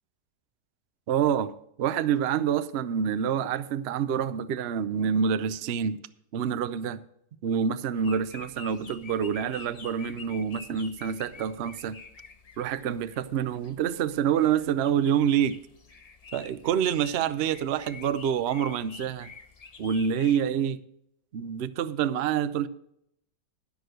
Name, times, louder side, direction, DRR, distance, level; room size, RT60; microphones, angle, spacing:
voice 1, 1.1-1.5 1.8-6.0 6.3-7.0 7.4-12.0 12.6-15.6 16.3-19.3 19.8-20.8 21.3-22.7, right 8 dB, 70° right, 13 dB, 0.6 m, -27 dB
sound 1, 7.9-20.4, left 5 dB, 65° left, 0.3 m, -48 dB
11.5 x 6.3 x 6.5 m, 0.74 s
omnidirectional pair, 1.9 m